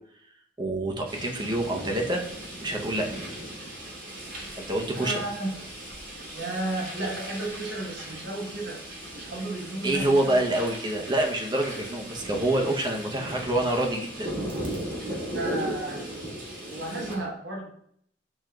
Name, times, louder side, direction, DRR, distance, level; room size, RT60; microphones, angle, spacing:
voice 1, 0.6-2.2 2.6-3.2 4.6-5.2 9.8-14.3, right 1 dB, 25° right, 1 dB, 0.7 m, -26 dB
sound 1, 1.0-17.1, right 1 dB, 50° right, 1.5 m, -37 dB
voice 2, 4.9-5.6 6.3-8.8 9.1-10.7 15.3-16.0 16.7-17.7, right 2 dB, 70° right, -1 dB, 1.1 m, -33 dB
6.2 x 3.6 x 2.2 m, 0.68 s
head